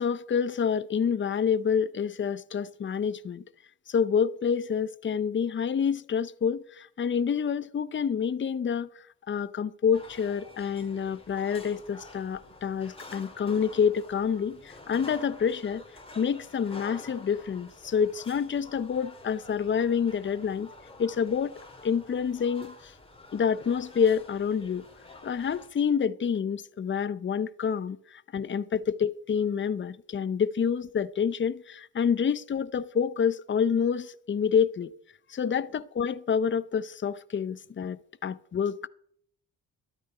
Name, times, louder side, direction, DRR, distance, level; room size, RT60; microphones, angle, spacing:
voice 1, 0.0-3.4 3.9-8.9 9.3-15.8 16.2-20.7 21.0-22.9 23.3-24.9 25.2-34.9 35.3-38.8, left 7 dB, 30° left, 0.6 m, -28 dB
sound 1, 9.9-25.7, left 2 dB, 15° left, 2.3 m, -48 dB
13.0 x 11.5 x 4.9 m
cardioid pair, 70°, 36 cm